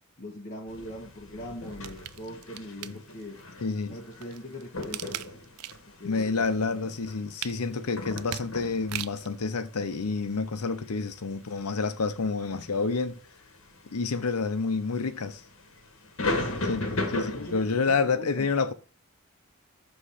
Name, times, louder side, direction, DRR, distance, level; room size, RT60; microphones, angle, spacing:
voice 1, 0.2-3.4 3.9-5.1 5.8-7.0 16.2-18.5, left 1 dB, 35° left, 0.9 m, -41 dB
sound 1, 0.7-17.7, left 2 dB, 60° left, 1.2 m, -38 dB
sound 2, 1.6-3.4 4.0-6.0 6.4-9.4 9.9-10.0, right 13 dB, 85° right, 0.4 m, -40 dB
voice 2, 3.6-4.0 6.0-13.2 13.9-15.4 16.7-18.7, left 4 dB, 85° left, 0.7 m, -29 dB
6.4 x 3.2 x 5.5 m
head